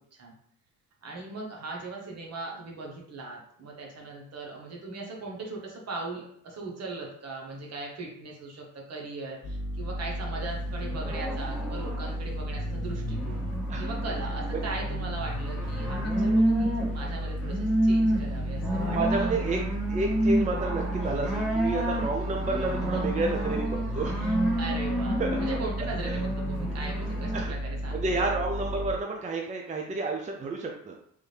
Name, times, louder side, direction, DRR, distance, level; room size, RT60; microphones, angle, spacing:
voice 1, 1.0-13.4 13.8-19.3 22.9-23.2 24.2-28.1, right 3 dB, 55° right, -1 dB, 1.2 m, -39 dB
sound 1, 9.4-29.0, equal, 40° left, 0.5 m, -34 dB
sound 2, 10.4-27.4, right 1 dB, 5° right, 1.4 m, -30 dB
voice 2, 18.8-19.6 19.9-24.3 25.2-25.4 27.3-27.5 27.9-31.0, right 3 dB, 25° right, 1 dB, 0.5 m, -30 dB
3.5 x 2.6 x 3.3 m, 0.65 s
cardioid pair, 90°, 30 cm